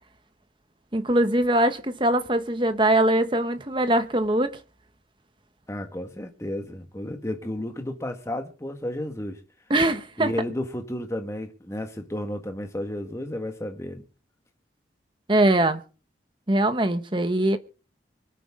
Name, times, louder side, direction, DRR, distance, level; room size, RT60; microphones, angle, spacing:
voice 1, 0.9-4.6 9.7-10.3 15.3-15.8 16.5-17.6, right 1 dB, 25° right, 1.0 m, -22 dB
voice 2, 5.7-9.4 10.2-14.0, left 1 dB, 15° left, 1.6 m, -32 dB
24.5 x 9.2 x 3.7 m
head